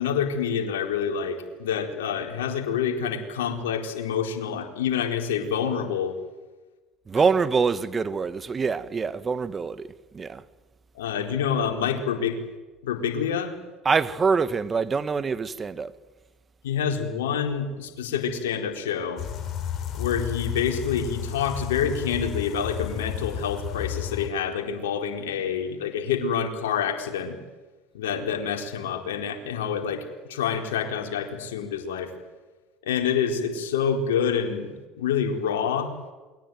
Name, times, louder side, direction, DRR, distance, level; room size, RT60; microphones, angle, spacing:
voice 1, 0.0-6.2 11.0-12.4 12.8-13.5 16.6-19.2 20.0-27.4 27.9-30.0 30.3-32.1 32.8-34.7 35.0-35.9, left 7 dB, 80° left, 4.2 m, -27 dB
voice 2, 7.1-9.9 10.1-10.4 13.8-15.9, right 5 dB, 30° right, 1.8 m, -25 dB
sound 1, 19.2-24.3, left 9 dB, 50° left, 4.3 m, -32 dB
28.5 x 22.0 x 9.4 m
hypercardioid pair, 75°, 0 cm